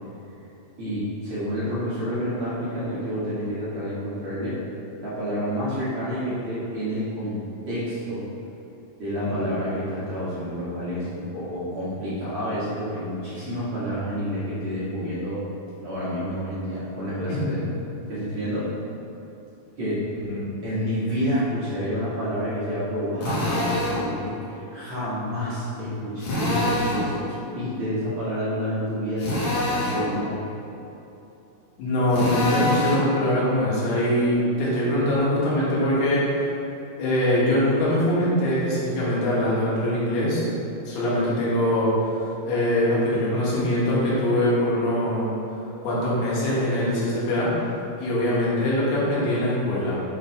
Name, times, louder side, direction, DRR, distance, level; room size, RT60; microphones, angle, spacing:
voice 1, 0.8-4.5 5.0-8.2 9.0-15.4 15.8-17.7 18.1-18.7 19.8-20.1 20.6-30.4, equal, 50° right, -11 dB, 1.6 m, -29 dB
Drill, 23.2-24.1 26.2-27.1 29.2-30.1 32.1-33.1, left 1 dB, 60° left, 2.2 m, -25 dB
voice 2, 31.8-36.2 37.0-40.4 40.9-41.9 42.4-45.3 45.8-47.5 48.0-50.0, left 1 dB, 80° left, -8 dB, 3.5 m, -23 dB
7.5 x 4.1 x 4.4 m, 2.9 s
omnidirectional pair, 4.5 m